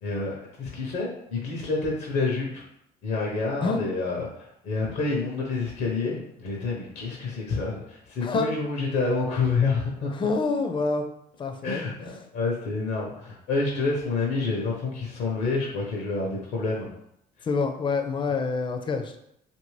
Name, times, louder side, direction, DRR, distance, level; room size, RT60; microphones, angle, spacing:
voice 1, 0.0-2.6 3.0-10.1 11.6-16.9, left 3 dB, 80° left, -2 dB, 0.8 m, -28 dB
voice 2, 10.1-11.1 11.4-11.8 17.4-19.2, left 4 dB, 30° left, 5 dB, 0.4 m, -27 dB
2.8 x 2.6 x 3.1 m, 0.77 s
cardioid pair, 110°, 17 cm